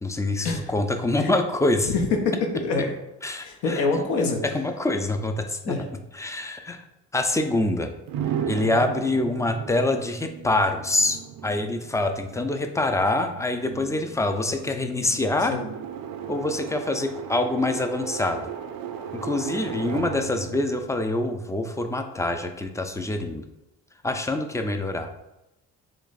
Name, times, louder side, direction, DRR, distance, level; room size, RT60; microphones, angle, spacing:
voice 1, 0.0-1.9 3.2-3.9 4.5-5.8 6.1-6.8 7.1-7.9 8.5-15.5 16.3-18.5 19.1-23.5 24.0-25.1, left 2 dB, 10° left, 6 dB, 0.3 m, -25 dB
voice 2, 1.9-2.9 3.4-4.4 5.6-5.8 14.7-15.2 15.5-15.7, left 3 dB, 70° left, 3 dB, 0.8 m, -26 dB
sound 1, 8.1-21.9, right 9 dB, 60° right, 0.5 m, -36 dB
3.1 x 2.5 x 4.0 m, 0.92 s
hypercardioid pair, 55°, 40 cm